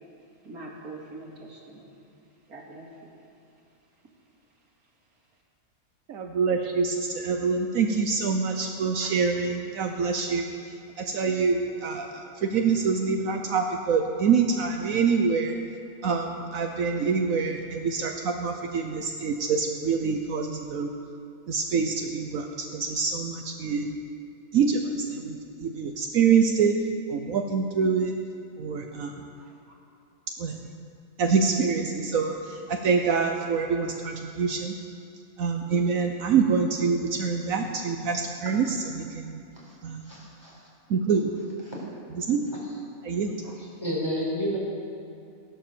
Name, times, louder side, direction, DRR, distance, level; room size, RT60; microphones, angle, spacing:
voice 1, 0.4-2.1 2.5-3.1 29.4-29.6 43.4-43.6, right 2 dB, 85° right, -3 dB, 2.8 m, -44 dB
voice 2, 6.1-10.4 11.0-15.5 16.0-20.9 21.5-24.0 24.5-26.7 27.1-28.1 28.6-29.1 30.4-30.6 31.2-34.7 35.4-39.4 39.8-40.0 40.9-41.3 42.2-42.4 43.0-43.3, right 5 dB, 70° right, 3 dB, 1.2 m, -26 dB
voice 3, 40.1-40.6 41.7-41.8 43.6-44.6, equal, 15° left, -5 dB, 4.4 m, -31 dB
15.0 x 11.5 x 6.8 m, 2.7 s
omnidirectional pair, 1.5 m